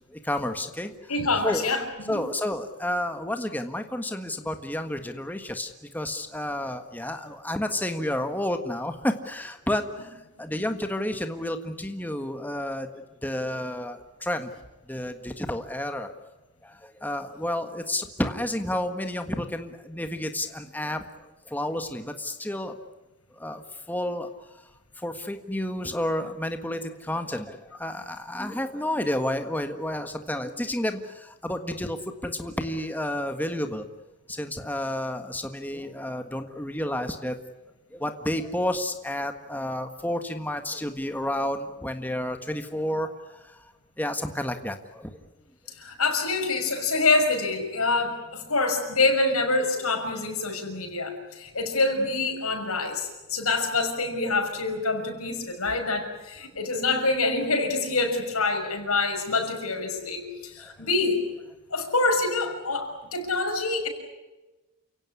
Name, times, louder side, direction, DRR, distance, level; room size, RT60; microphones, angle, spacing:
voice 1, 0.1-1.1 1.4-1.6 2.1-12.9 13.2-14.5 14.9-16.1 16.6-22.8 23.4-24.6 25.0-33.8 34.3-37.4 37.9-45.1 60.6-60.9, left 1 dB, 10° left, 6 dB, 1.6 m, -31 dB
voice 2, 1.1-2.2 45.7-61.2 61.7-63.9, left 3 dB, 80° left, 3 dB, 6.2 m, -26 dB
29.0 x 17.0 x 9.8 m, 1.1 s
head